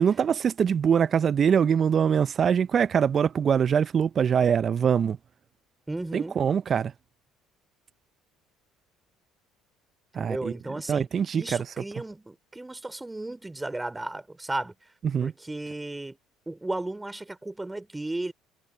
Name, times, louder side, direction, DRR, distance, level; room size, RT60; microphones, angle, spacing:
voice 1, 0.0-5.2 6.1-6.9 10.1-10.5 10.9-11.7 15.0-15.3, right 7 dB, 45° right, 1.0 m, -23 dB
voice 2, 5.9-6.4 10.2-14.9 15.2-16.2 16.5-18.3, right 2 dB, 15° right, 4.0 m, -35 dB
hypercardioid pair, 60°, 0 cm